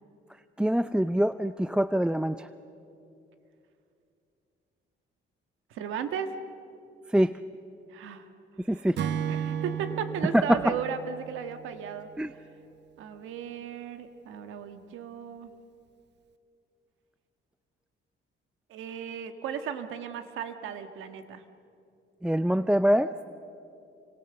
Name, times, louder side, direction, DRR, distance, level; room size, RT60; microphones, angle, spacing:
voice 1, 0.6-2.5 7.1-7.4 8.7-9.0 10.3-10.8 12.2-12.3 22.2-23.1, equal, 5° right, 12 dB, 0.5 m, -24 dB
voice 2, 5.7-6.4 7.9-8.2 8.7-8.9 9.3-12.1 13.0-15.5 18.7-21.4, right 7 dB, 90° right, 9 dB, 1.6 m, -35 dB
Acoustic guitar / Strum, 9.0-12.4, right 8 dB, 60° right, 0.9 m, -34 dB
29.5 x 24.5 x 6.9 m, 2.6 s
cardioid pair, 90°, 20 cm